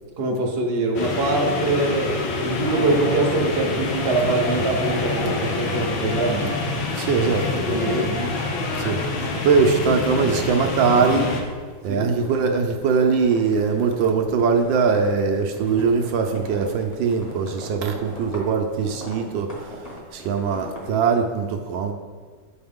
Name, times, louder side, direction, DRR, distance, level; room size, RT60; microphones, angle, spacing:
voice 1, 0.2-6.6 7.7-8.1 11.9-12.1, right 2 dB, 45° right, 1 dB, 0.8 m, -23 dB
sound 1, 1.0-11.4, left 3 dB, 85° left, 1.6 m, -26 dB
sound 2, 2.5-9.8 10.1-10.7 11.1-21.0, equal, 25° left, 1.1 m, -40 dB
sound 3, 2.6-3.7 3.9-10.1, equal, 50° left, 1.6 m, -37 dB
voice 2, 6.9-7.7 8.8-11.3 11.8-21.9, right 5 dB, 75° right, 3 dB, 1.3 m, -21 dB
7.9 x 4.8 x 3.5 m, 1.5 s
omnidirectional pair, 2.2 m